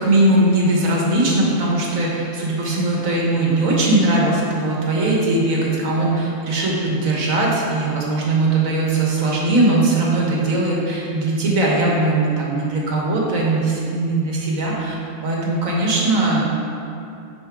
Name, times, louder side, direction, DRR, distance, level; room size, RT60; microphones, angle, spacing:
voice 1, 0.0-14.9 15.2-16.5, right 2 dB, 85° right, -3 dB, 1.6 m, -19 dB
5.9 x 5.1 x 4.5 m, 2.6 s
omnidirectional pair, 1.4 m